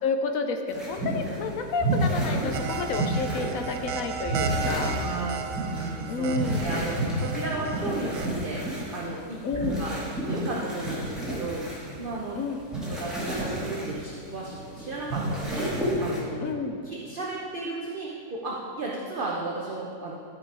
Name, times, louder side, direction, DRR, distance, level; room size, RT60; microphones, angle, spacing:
voice 1, 0.0-5.0 6.1-6.7 9.4-9.8 12.3-12.6 16.4-16.8, left 4 dB, 65° left, 6 dB, 1.0 m, -30 dB
sound 1, 0.7-16.2, right 1 dB, ahead, 1.9 m, -31 dB
sound 2, 2.5-8.3, right 5 dB, 85° right, 1.2 m, -34 dB
voice 2, 5.0-12.4 12.8-16.4 16.8-20.1, right 3 dB, 40° right, -3 dB, 0.8 m, -35 dB
12.5 x 5.2 x 4.8 m, 2.6 s
omnidirectional pair, 1.8 m